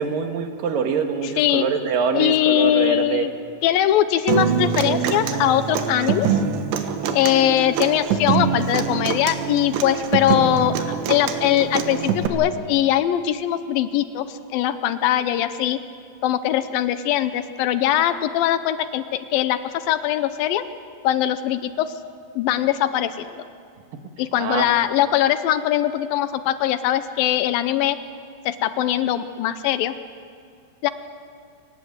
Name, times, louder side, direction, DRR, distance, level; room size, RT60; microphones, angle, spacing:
voice 1, 0.0-3.3 23.9-24.0 24.4-24.7, right 6 dB, 60° right, 5 dB, 2.9 m, -24 dB
voice 2, 1.2-1.6 2.1-3.3 3.6-6.4 7.1-15.8 16.2-20.6 21.0-21.9 22.4-23.4 24.2-28.0 28.5-29.9 30.8-30.9, left 12 dB, 75° left, 12 dB, 2.2 m, -21 dB
Human voice / Acoustic guitar, 4.3-12.3, right 7 dB, 85° right, 3.6 m, -24 dB
26.5 x 18.5 x 8.0 m, 2.3 s
omnidirectional pair, 4.8 m